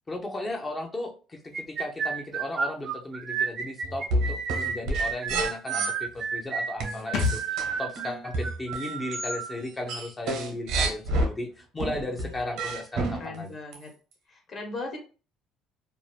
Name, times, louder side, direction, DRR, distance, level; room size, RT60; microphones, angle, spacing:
voice 1, 0.1-13.5, left 2 dB, 25° left, 2 dB, 0.6 m, -35 dB
sound 1, 1.5-9.6, right 6 dB, 55° right, 0.5 m, -31 dB
sound 2, 3.8-5.9 6.8-9.4 9.7-11.3 11.8-13.4 13.7-13.8, right 2 dB, 75° right, 1.0 m, -29 dB
sound 3, 7.1-10.7 10.9-11.0, left 5 dB, 65° left, 0.7 m, -35 dB
voice 2, 13.1-13.9 14.3-15.0, left 3 dB, 45° left, 3 dB, 1.1 m, -38 dB
2.6 x 2.1 x 3.2 m, 0.35 s
supercardioid pair, 85°, 0 cm